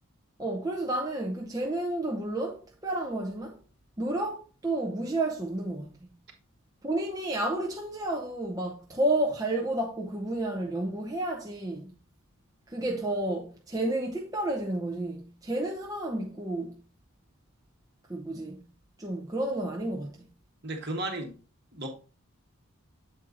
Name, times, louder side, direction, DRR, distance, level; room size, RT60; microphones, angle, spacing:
voice 1, 0.4-3.6 4.0-6.0 6.8-11.9 12.7-16.8 18.1-18.6 19.0-20.2, right 1 dB, 15° right, 0.7 m, -31 dB
voice 2, 20.6-21.3 21.7-21.9, right 1 dB, 50° right, 1.5 m, -33 dB
7.7 x 4.4 x 3.8 m
head